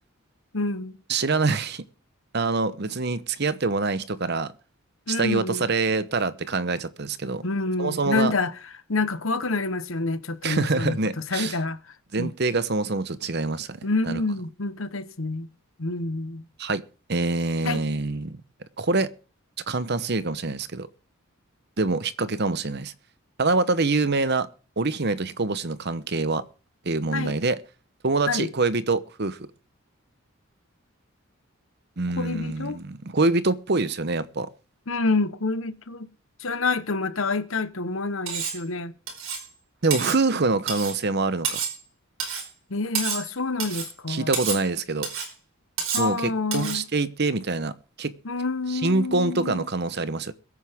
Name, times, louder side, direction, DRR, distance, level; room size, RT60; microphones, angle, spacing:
voice 1, 0.5-1.0 5.1-5.7 7.4-8.5 8.9-11.0 11.3-11.8 12.2-12.3 13.8-15.5 15.8-16.4 17.6-17.8 27.1-27.3 28.3-28.5 32.2-32.8 34.9-36.1 36.4-38.9 42.7-44.3 45.9-46.8 48.2-49.7, left 3 dB, 65° left, 1.1 m, -27 dB
voice 2, 1.1-1.8 2.3-4.5 5.1-7.4 7.8-8.3 10.4-11.6 12.1-13.8 14.1-14.2 16.6-16.8 17.1-18.4 18.8-19.1 19.7-20.9 21.8-22.9 23.4-24.5 24.8-26.4 26.8-27.6 28.0-29.4 32.0-34.5 39.8-41.6 44.1-45.1 46.0-47.7 48.0-48.1 48.7-50.3, right 3 dB, 50° right, 0.9 m, -25 dB
Cutlery silverware, 38.3-38.6 39.1-39.5 39.9-40.2 40.7-41.0 41.4-41.8 42.2-42.5 42.9-43.3 43.6-43.9 44.3-44.6 45.0-45.3 45.8-46.1 46.5-46.8, right 6 dB, 65° right, 4.8 m, -29 dB
22.5 x 9.6 x 3.6 m
head